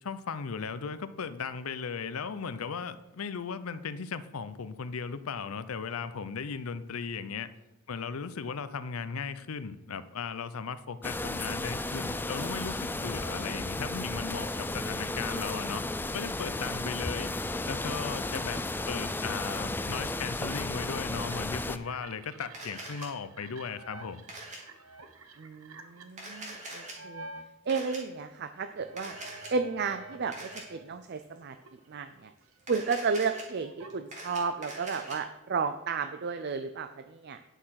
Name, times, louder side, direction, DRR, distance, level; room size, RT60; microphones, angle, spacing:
voice 1, 0.0-7.5 7.9-15.8 16.1-17.3 17.7-18.6 18.9-24.2, left 5 dB, 90° left, 13 dB, 0.6 m, -37 dB
sound 1, 11.0-21.8, left 2 dB, 10° left, 0.4 m, -34 dB
sound 2, 20.5-27.5 28.0-30.9 31.2-34.8, right 3 dB, 85° right, 1.0 m, -50 dB
Camera, 22.5-23.1 24.3-24.6 26.1-26.9 27.7-28.0 29.0-29.5 30.3-30.6 32.6-33.4 33.9-35.2, right 1 dB, 35° right, 2.8 m, -43 dB
voice 2, 25.4-27.2 27.7-29.2 29.5-31.6 31.9-32.3 32.7-37.4, right 5 dB, 50° right, 9 dB, 0.5 m, -33 dB
10.0 x 6.5 x 5.8 m, 0.97 s
head